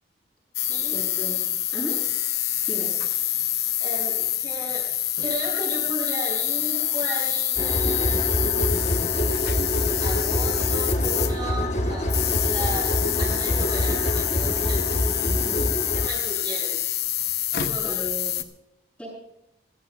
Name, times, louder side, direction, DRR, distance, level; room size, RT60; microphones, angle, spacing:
sound 1, 0.5-11.6 12.0-18.4, left 13 dB, 60° left, 0.9 m, -26 dB
voice 1, 0.9-1.4 1.7-1.9 2.7-2.9 15.2-15.7 17.8-18.3 19.0-19.1, equal, 5° left, -9 dB, 7.5 m, -34 dB
voice 2, 3.8-4.8 5.2-8.3 10.0-14.9 15.6-15.7 15.9-16.8 17.5-18.0, right 1 dB, 25° right, 0 dB, 6.0 m, -34 dB
sound 2, 7.6-16.1, equal, 40° left, 1.1 m, -25 dB
25.5 x 16.0 x 2.4 m, 0.81 s
head